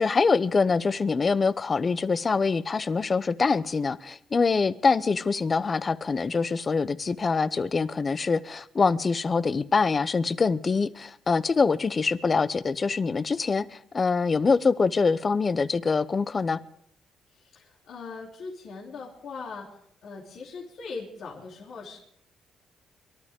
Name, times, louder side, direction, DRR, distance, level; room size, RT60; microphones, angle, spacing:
voice 1, 0.0-16.6, left 4 dB, 35° left, 0.8 m, -24 dB
voice 2, 17.3-22.0, left 4 dB, 70° left, 3.3 m, -40 dB
23.5 x 12.5 x 3.7 m
cardioid pair, 90°, 0 cm